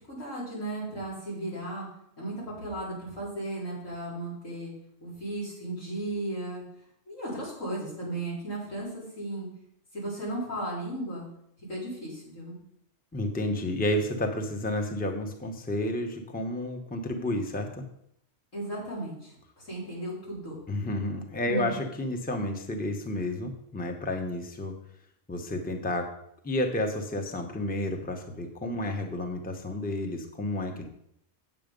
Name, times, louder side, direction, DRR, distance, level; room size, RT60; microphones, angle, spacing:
voice 1, 0.1-1.9 2.2-2.3 2.6-4.7 5.0-6.6 7.1-9.5 9.9-11.3 11.7-12.6 18.5-20.6 21.5-21.7, right 1 dB, 85° left, -7 dB, 4.6 m, -35 dB
voice 2, 13.1-17.8 20.7-24.8 25.3-26.1 26.4-30.9, left 1 dB, 10° left, 4 dB, 0.8 m, -31 dB
8.1 x 7.8 x 5.2 m, 0.73 s
omnidirectional pair, 1.3 m